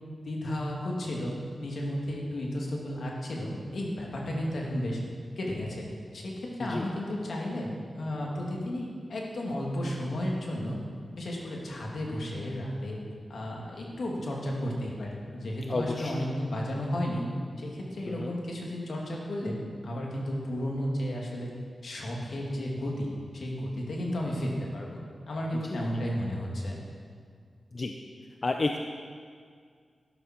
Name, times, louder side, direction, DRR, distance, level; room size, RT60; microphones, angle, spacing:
voice 1, 0.2-5.0 5.4-5.9 6.1-10.8 11.1-13.0 13.3-17.2 17.6-21.5 21.8-25.0 25.3-26.8, left 1 dB, 70° left, -2 dB, 2.6 m, -33 dB
voice 2, 15.7-16.2 18.1-18.4 25.7-26.0 27.7-27.9 28.4-28.8, left 3 dB, 45° left, 4 dB, 0.7 m, -31 dB
12.5 x 11.5 x 4.6 m, 2.1 s
cardioid pair, 70°, 0 cm